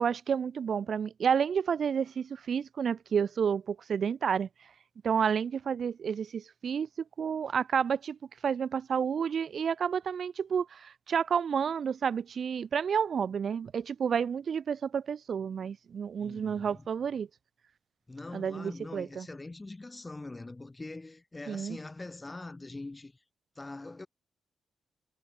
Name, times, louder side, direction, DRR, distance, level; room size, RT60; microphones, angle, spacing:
voice 1, 0.0-4.5 5.0-6.9 7.2-8.2 8.4-17.3 18.3-19.3 21.5-21.8, right 7 dB, 45° right, 0.6 m, -30 dB
voice 2, 16.2-16.9 18.1-23.2 23.6-24.1, left 2 dB, 15° left, 2.4 m, -43 dB
cardioid pair, 140°, 0 cm